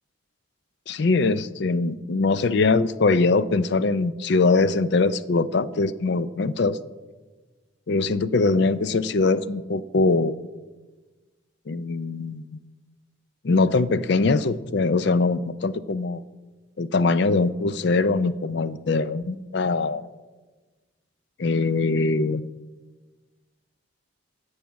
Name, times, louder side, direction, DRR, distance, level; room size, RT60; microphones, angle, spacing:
voice 1, 0.9-6.8 7.9-10.3 11.7-12.4 13.4-16.2 16.8-20.0 21.4-22.4, left 3 dB, 55° left, 15 dB, 0.4 m, -22 dB
13.5 x 4.9 x 8.2 m, 1.3 s
head